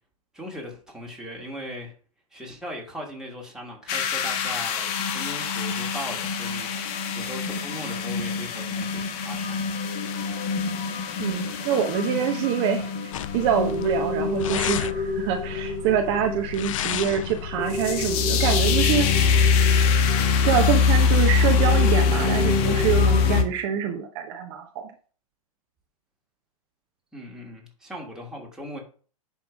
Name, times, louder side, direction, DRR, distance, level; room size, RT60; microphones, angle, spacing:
voice 1, 0.3-1.9 2.3-9.7 12.7-12.9 27.1-28.8, equal, 5° right, -1 dB, 2.6 m, -39 dB
sound 1, 3.9-23.4, left 5 dB, 40° left, 1.2 m, -24 dB
voice 2, 11.2-19.1 20.4-24.7, right 8 dB, 45° right, 3 dB, 1.1 m, -25 dB
sound 2, 13.1-18.1, left 12 dB, 60° left, 0.4 m, -33 dB
10.5 x 3.6 x 4.8 m, 0.41 s
figure-of-eight pair, 105°, 19 cm